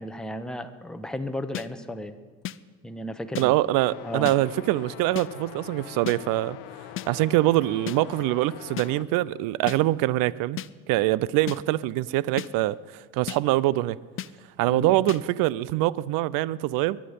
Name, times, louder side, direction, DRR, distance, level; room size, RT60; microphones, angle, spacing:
voice 1, 0.0-2.2 2.8-3.5 4.0-4.3 14.7-14.9, left 1 dB, ahead, 1.2 m, -34 dB
sound 1, 1.5-1.7 2.4-2.6 3.3-3.5 4.2-4.4 5.1-5.3 6.1-6.2 7.0-7.1 7.9-8.0 8.8-8.9 9.7-9.8 10.6-10.7 11.5-11.6 12.4-12.5 13.3-13.4 14.2-14.3 15.1-15.2, left 12 dB, 30° left, 0.5 m, -33 dB
voice 2, 3.4-6.6 7.1-10.6 10.9-14.0 14.6-17.0, right 16 dB, 55° right, 0.6 m, -24 dB
sound 2, 3.7-9.0, left 13 dB, 65° left, 0.9 m, -43 dB
22.0 x 10.0 x 5.3 m
hypercardioid pair, 70°, 41 cm